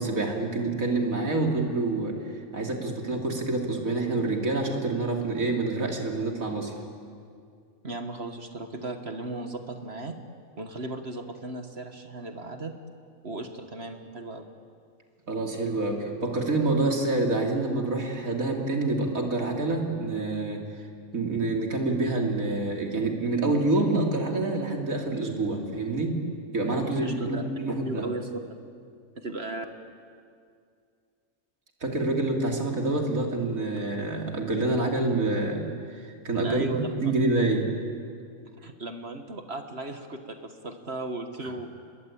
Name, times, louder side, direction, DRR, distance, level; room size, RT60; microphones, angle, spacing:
voice 1, 0.0-2.2 2.5-6.7 15.3-20.6 21.1-26.2 26.5-28.1 31.8-35.7 36.2-36.7 37.0-37.7 41.4-41.5, right 2 dB, 80° right, 2 dB, 3.6 m, -27 dB
voice 2, 7.8-10.1 10.6-12.7 13.2-14.5 26.9-28.4 29.2-29.7 36.4-36.9 38.6-41.7, right 2 dB, 50° right, 6 dB, 1.8 m, -36 dB
29.0 x 22.0 x 8.7 m, 2.2 s
omnidirectional pair, 1.4 m